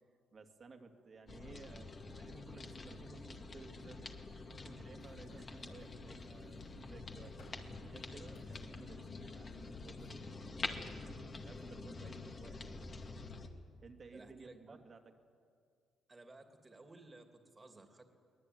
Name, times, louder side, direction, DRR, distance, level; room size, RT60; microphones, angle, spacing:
voice 1, 0.3-7.5 7.8-12.8 13.8-15.1, right 4 dB, 45° right, 5 dB, 2.4 m, -57 dB
sound 1, 1.3-13.5, left 3 dB, 35° left, 2.2 m, -47 dB
sound 2, 4.5-10.1, left 4 dB, 80° left, 6.1 m, -67 dB
voice 2, 5.3-5.8 14.1-14.8 16.1-18.2, right 2 dB, 25° right, 5 dB, 2.6 m, -57 dB
23.0 x 19.0 x 9.4 m, 2.2 s
cardioid pair, 90°, 0 cm